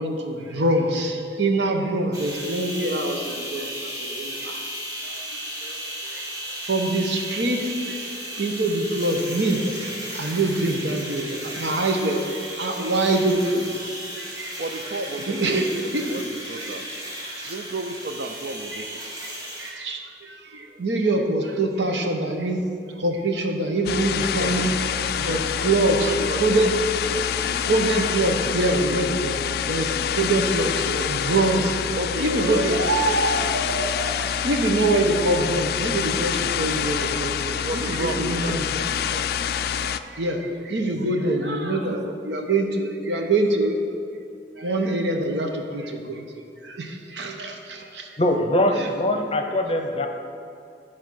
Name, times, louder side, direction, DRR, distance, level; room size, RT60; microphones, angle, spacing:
voice 1, 0.0-4.7 5.0-13.9 14.1-14.6 15.3-16.2 16.6-16.7 17.4-17.5 18.7-22.7 23.0-26.1 26.4-26.7 27.6-38.8 39.7-43.8 44.6-48.1 48.8-48.9, right 2 dB, 80° right, 3 dB, 1.0 m, -25 dB
sound 1, 2.1-19.7, equal, 20° right, 1.9 m, -35 dB
voice 2, 14.6-15.6 16.0-16.9 17.5-19.0 25.7-26.4 27.1-27.9 31.9-32.9 33.3-34.2 37.6-38.5 39.1-39.4 40.9-41.3 41.8-42.1, right 2 dB, 60° right, 6 dB, 0.5 m, -33 dB
sound 2, 23.8-40.0, left 8 dB, 60° left, 0.3 m, -27 dB
voice 3, 48.2-50.1, left 1 dB, 30° left, 5 dB, 0.7 m, -22 dB
10.5 x 4.4 x 6.3 m, 2.5 s
head